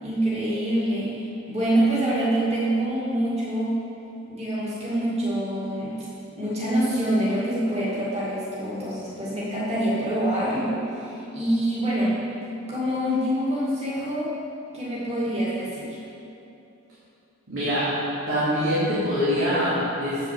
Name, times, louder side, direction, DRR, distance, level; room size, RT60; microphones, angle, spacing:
voice 1, 0.0-3.8 4.3-5.9 6.4-12.2 12.7-14.3 14.7-16.0, right 1 dB, 30° right, -9 dB, 2.4 m, -25 dB
voice 2, 17.5-17.9 18.3-20.3, equal, 85° right, -12 dB, 2.6 m, -24 dB
7.6 x 6.7 x 7.6 m, 2.8 s
head